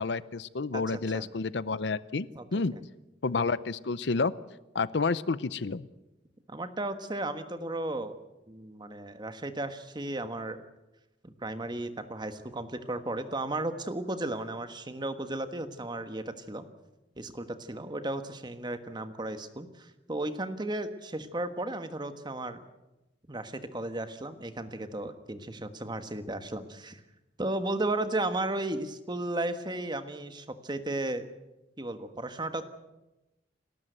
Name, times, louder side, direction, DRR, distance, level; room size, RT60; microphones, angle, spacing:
voice 1, 0.0-2.3 2.5-2.8 3.2-4.3 4.7-5.9, left 4 dB, 70° left, 18 dB, 0.6 m, -29 dB
voice 2, 6.5-8.1 8.5-10.6 11.2-16.7 17.2-22.6 23.3-27.0 27.4-31.3 31.8-32.6, right 2 dB, 25° right, 9 dB, 1.4 m, -34 dB
29.0 x 13.5 x 8.0 m, 1.0 s
head